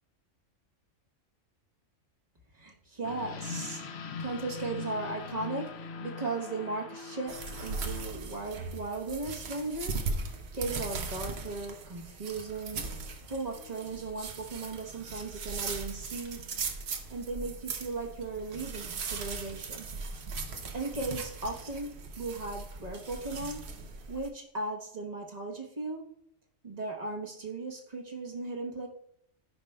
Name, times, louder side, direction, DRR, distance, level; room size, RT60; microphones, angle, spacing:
voice 1, 2.5-3.8 4.2-9.9 10.5-12.9 13.3-16.4 17.1-19.9 20.7-23.6 24.1-26.1 26.6-28.9, right 3 dB, 35° right, 1 dB, 1.1 m, -37 dB
sound 1, 3.0-8.1, left 5 dB, 60° left, 0.9 m, -41 dB
sound 2, 7.3-24.3, right 4 dB, 60° right, 1.0 m, -39 dB
13.5 x 5.1 x 2.2 m, 0.74 s
omnidirectional pair, 1.3 m